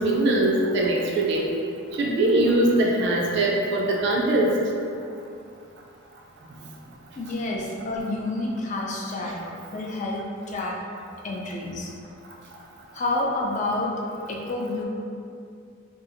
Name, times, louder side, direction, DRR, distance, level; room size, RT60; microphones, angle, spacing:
voice 1, 0.0-1.5 1.9-4.5, right 1 dB, 55° right, -2 dB, 0.3 m, -22 dB
voice 2, 7.2-9.4 9.7-10.7 11.2-11.9 12.9-13.9 14.3-14.8, left 2 dB, 35° left, -2 dB, 0.3 m, -29 dB
2.7 x 2.4 x 2.5 m, 2.4 s
head